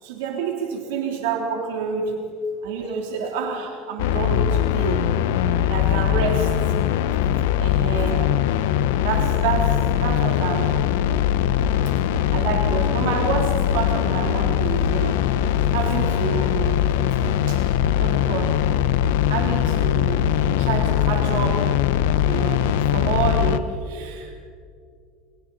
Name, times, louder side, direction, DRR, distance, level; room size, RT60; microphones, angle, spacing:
voice 1, 0.0-2.2 2.6-5.0 5.6-6.5 7.6-8.3 9.0-10.8 12.3-15.1 15.7-16.9 17.5-18.6 19.3-20.3 20.6-21.6 22.2-22.7 22.9-24.3, right 5 dB, 90° right, 0 dB, 3.4 m, -28 dB
sound 1, 4.0-23.6, left 10 dB, 85° left, 0.9 m, -21 dB
29.5 x 24.0 x 4.2 m, 2.2 s
cardioid pair, 155°, 0 cm